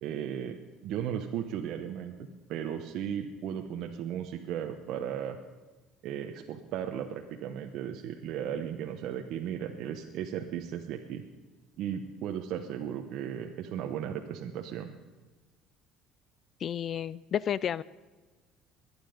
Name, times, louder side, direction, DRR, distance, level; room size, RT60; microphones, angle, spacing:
voice 1, 0.0-5.4 6.0-11.2 11.8-14.9, right 9 dB, 65° right, 4 dB, 1.0 m, -36 dB
voice 2, 16.6-17.8, left 9 dB, 45° left, 20 dB, 0.4 m, -31 dB
23.0 x 9.9 x 5.3 m, 1.2 s
cardioid pair, 110°, 0 cm